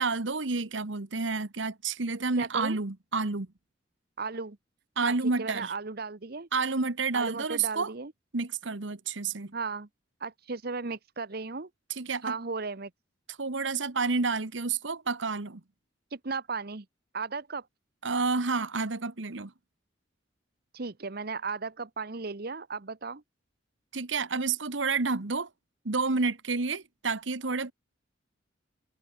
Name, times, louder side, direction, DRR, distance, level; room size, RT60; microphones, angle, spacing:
voice 1, 0.0-3.5 5.0-5.7 6.5-7.9 8.3-9.5 12.0-12.3 13.4-15.6 18.0-19.5 23.9-25.5 25.8-27.7, right 4 dB, 85° right, 1.4 m, -29 dB
voice 2, 2.4-2.8 4.2-4.6 5.0-6.5 7.1-8.1 9.5-9.9 10.2-11.7 12.2-12.9 16.1-16.8 17.1-17.7 20.7-23.2, right 4 dB, 55° right, 1.1 m, -35 dB
head